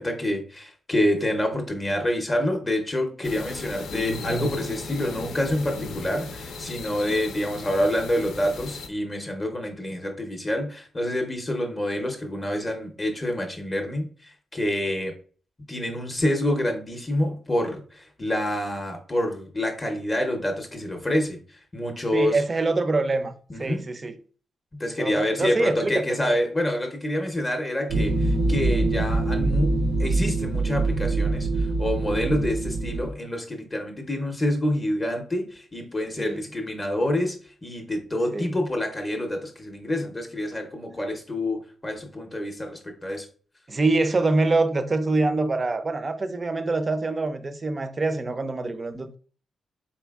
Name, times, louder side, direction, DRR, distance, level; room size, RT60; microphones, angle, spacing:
voice 1, 0.0-15.1 15.7-22.4 23.5-23.8 24.7-43.3, left 1 dB, 20° left, 0.6 m, -27 dB
sound 1, 3.2-8.9, left 2 dB, 85° left, 0.6 m, -35 dB
voice 2, 22.1-24.2 25.0-26.4 36.2-36.4 38.3-38.5 43.7-49.2, right 3 dB, 25° right, 0.4 m, -25 dB
sound 2, 27.9-33.1, right 2 dB, 90° right, 0.5 m, -24 dB
4.2 x 3.8 x 2.3 m
wide cardioid pair, 170°, 0 cm